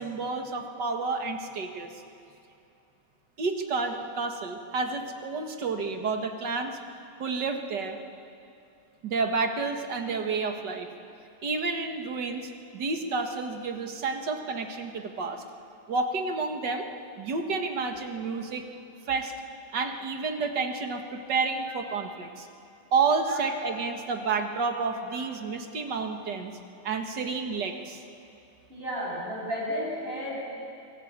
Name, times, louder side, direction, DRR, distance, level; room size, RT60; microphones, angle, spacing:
voice 1, 0.0-1.9 3.4-6.7 7.2-8.0 9.0-10.9 11.4-15.4 15.9-16.9 17.2-18.7 19.1-19.3 19.7-22.5 22.9-26.6 26.8-28.0, right 4 dB, 70° right, 5 dB, 2.3 m, -30 dB
voice 2, 28.7-30.4, equal, 35° right, -4 dB, 7.9 m, -32 dB
26.0 x 18.5 x 8.8 m, 2.6 s
omnidirectional pair, 1.9 m